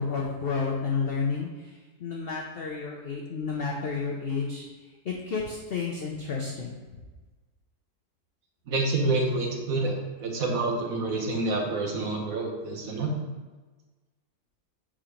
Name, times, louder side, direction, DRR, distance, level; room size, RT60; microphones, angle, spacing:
voice 1, 0.0-4.7 5.0-6.8, left 5 dB, 55° left, -2 dB, 0.7 m, -31 dB
voice 2, 8.7-13.1, right 2 dB, 60° right, 1 dB, 1.4 m, -28 dB
5.0 x 4.3 x 5.0 m, 1.3 s
omnidirectional pair, 1.7 m